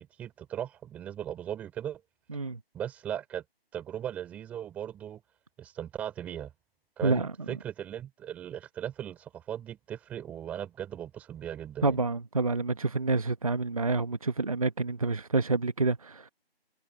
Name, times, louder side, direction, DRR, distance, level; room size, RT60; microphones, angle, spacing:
voice 1, 0.0-2.0 2.7-3.4 3.7-5.2 5.6-6.5 7.0-12.0, right 10 dB, 5° right, 5.4 m, -38 dB
voice 2, 11.8-16.3, right 3 dB, 35° right, 1.0 m, -28 dB
figure-of-eight pair, 170°, 31 cm